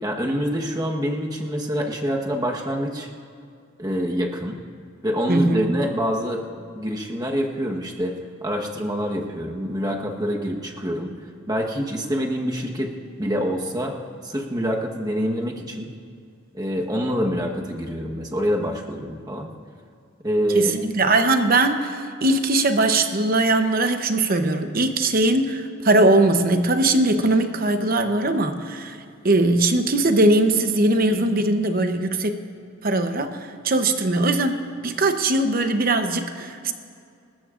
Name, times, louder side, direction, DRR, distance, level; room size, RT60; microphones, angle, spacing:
voice 1, 0.0-3.1 3.8-4.6 5.0-6.4 6.7-8.1 8.4-11.1 11.5-14.0 14.2-15.9 16.5-19.5 20.2-20.7, equal, 20° right, 1 dB, 1.2 m, -26 dB
voice 2, 5.3-5.8 20.5-29.0 29.2-32.4 32.8-34.6 34.8-36.7, right 2 dB, 45° right, 8 dB, 0.8 m, -20 dB
26.0 x 14.0 x 2.5 m, 2.4 s
head